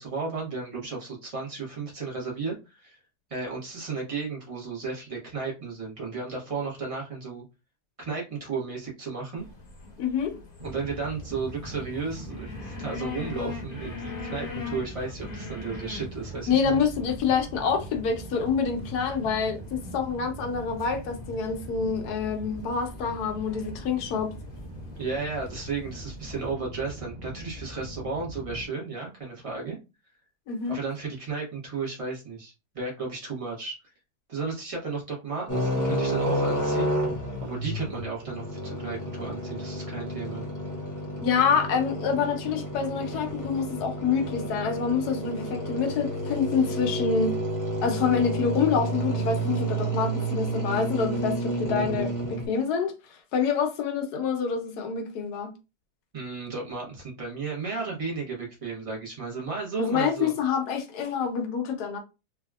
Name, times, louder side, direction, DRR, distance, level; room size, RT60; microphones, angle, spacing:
voice 1, 0.0-3.0 3.3-7.4 8.0-9.4 10.6-16.8 25.0-29.8 30.7-33.9 34.3-36.9 37.4-40.4 56.1-60.3, right 4 dB, 25° right, 0.9 m, -34 dB
sound 1, 9.4-26.5, left 4 dB, 35° left, 1.0 m, -43 dB
voice 2, 10.0-10.4 16.5-24.3 30.5-30.8 41.2-47.3 47.8-55.5 59.8-62.0, left 6 dB, 65° left, 1.2 m, -27 dB
sound 2, 10.6-28.6, equal, 80° right, 0.3 m, -41 dB
sound 3, 35.5-52.5, right 1 dB, 20° left, 0.5 m, -30 dB
3.4 x 2.8 x 2.3 m
omnidirectional pair, 1.9 m